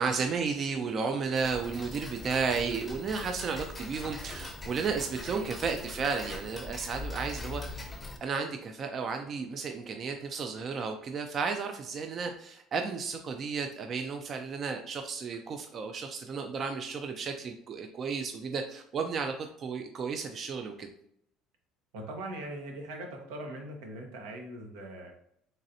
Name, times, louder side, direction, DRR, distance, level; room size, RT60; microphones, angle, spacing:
voice 1, 0.0-7.8 8.2-20.9, right 5 dB, 40° right, 5 dB, 0.4 m, -33 dB
Tick-tock, 1.3-8.2, left 2 dB, 15° left, 0.6 m, -41 dB
voice 2, 21.9-25.1, right 1 dB, 90° right, 2 dB, 1.0 m, -41 dB
3.9 x 3.1 x 2.6 m, 0.70 s
supercardioid pair, 100°, 0 cm